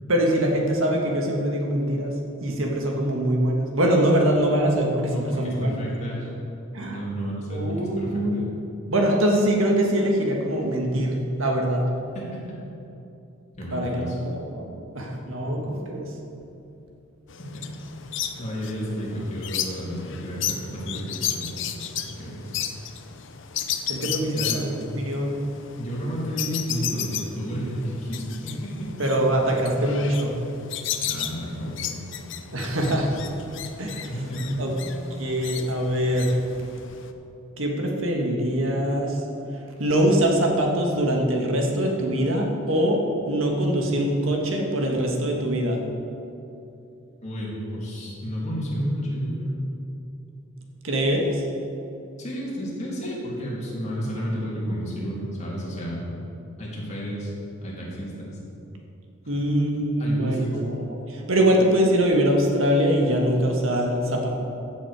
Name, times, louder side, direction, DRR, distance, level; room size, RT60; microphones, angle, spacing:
voice 1, 0.1-2.2 2.4-5.8 6.7-7.0 7.5-8.4 8.9-11.8 13.7-14.7 14.9-16.1 23.9-25.4 29.0-30.3 32.5-33.2 33.8-34.1 34.6-34.7 35.2-36.4 37.6-39.2 39.8-43.0 43.3-45.8 50.8-51.4 59.3-60.8 61.1-64.3, right 1 dB, 70° right, 1 dB, 1.6 m, -23 dB
voice 2, 5.1-6.3 6.9-8.5 12.1-12.5 13.6-14.2 17.4-17.5 18.4-21.7 22.2-22.5 24.3-24.6 25.8-28.9 31.0-31.8 32.1-32.2 34.1-34.6 47.2-49.6 52.2-56.1 56.6-57.3 57.6-58.4 60.0-60.6, equal, 35° left, -5 dB, 2.7 m, -31 dB
sound 1, 17.3-37.1, left 9 dB, 60° left, 0.7 m, -34 dB
15.0 x 7.6 x 4.9 m, 2.8 s
head